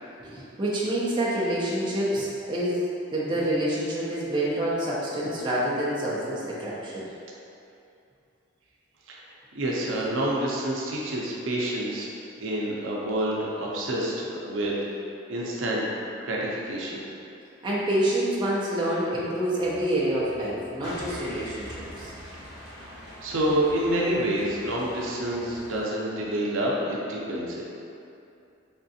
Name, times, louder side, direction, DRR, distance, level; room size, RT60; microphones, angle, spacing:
voice 1, 0.2-7.1 17.6-22.1, right 1 dB, 25° right, -7 dB, 0.5 m, -27 dB
voice 2, 9.5-12.1 12.4-14.7 15.3-15.9 16.2-17.0 22.8-22.9 23.2-27.7, right 1 dB, 75° right, -4 dB, 0.6 m, -28 dB
sound 1, 19.6-25.8, equal, 70° left, 0.9 m, -43 dB
3.6 x 3.2 x 2.7 m, 2.6 s
head